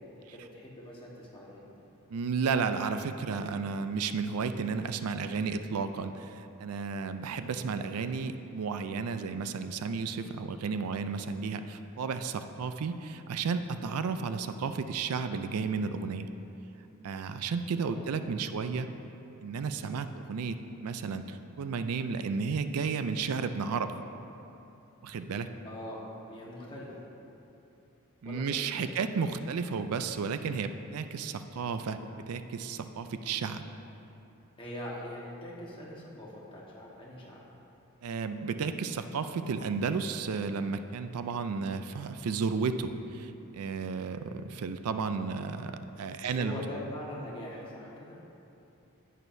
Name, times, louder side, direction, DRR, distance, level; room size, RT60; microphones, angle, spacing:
voice 1, 0.3-1.6 17.8-18.6 25.6-26.9 28.2-28.9 34.6-37.4 46.2-48.2, left 1 dB, 25° left, -5 dB, 1.3 m, -42 dB
voice 2, 2.1-16.3 17.0-18.9 19.4-24.0 25.0-25.5 28.2-33.6 38.0-46.6, right 5 dB, 80° right, 9 dB, 0.4 m, -33 dB
10.5 x 9.0 x 2.7 m, 2.9 s
head